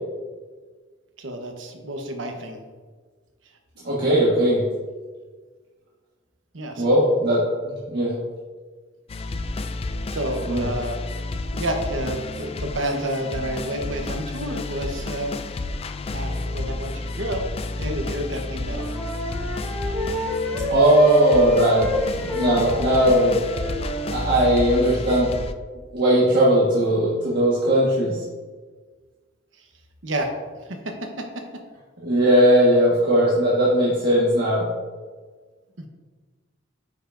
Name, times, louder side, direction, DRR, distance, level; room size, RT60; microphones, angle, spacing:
voice 1, 1.2-2.6 6.5-7.0 10.1-11.0 11.5-15.4 16.1-17.4 17.8-18.9 29.6-29.7 30.0-30.3 30.7-31.4 35.8-35.9, right 1 dB, 80° right, 4 dB, 1.0 m, -30 dB
voice 2, 3.8-4.6 6.8-7.4 7.9-8.2 10.5-10.7 20.7-21.9 22.2-23.4 24.1-25.3 25.9-28.2 32.0-34.7, right 1 dB, 55° right, -7 dB, 1.5 m, -18 dB
sound 1, 9.1-25.5, left 2 dB, 30° left, 0.3 m, -31 dB
Wind instrument woodwind instrument, 18.6-24.2, equal, 5° left, 1.6 m, -28 dB
9.4 x 5.7 x 2.6 m, 1.4 s
head